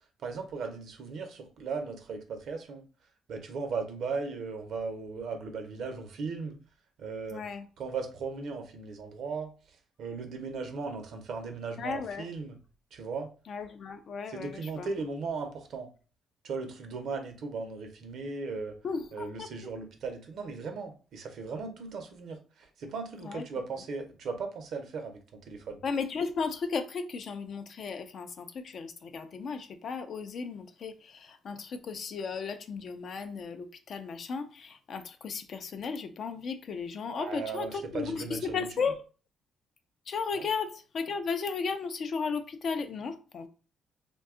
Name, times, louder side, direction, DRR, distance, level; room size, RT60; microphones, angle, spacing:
voice 1, 0.2-2.8 3.3-6.6 7.0-7.4 7.8-9.5 10.0-12.5 12.9-13.3 14.3-15.9 16.4-18.8 19.1-25.2 25.5-25.8 37.1-38.7 40.3-40.5, right 4 dB, 70° right, 0.6 m, -37 dB
voice 2, 7.3-7.7 11.8-12.3 13.5-14.9 18.8-19.5 23.2-23.4 25.8-39.0 40.1-43.5, left 5 dB, 55° left, 0.4 m, -35 dB
2.6 x 2.2 x 3.6 m
cardioid pair, 90°, 0 cm